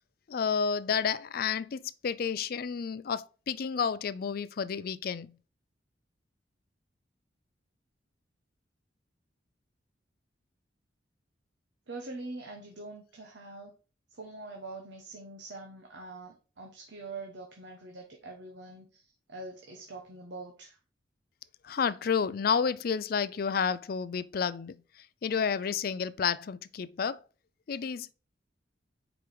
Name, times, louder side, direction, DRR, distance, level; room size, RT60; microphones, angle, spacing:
voice 1, 0.3-5.3 21.6-27.2 27.7-28.1, left 6 dB, 55° left, 0.4 m, -31 dB
voice 2, 11.9-13.7 14.1-20.8, right 2 dB, 80° right, 1.1 m, -44 dB
4.9 x 4.6 x 4.9 m
head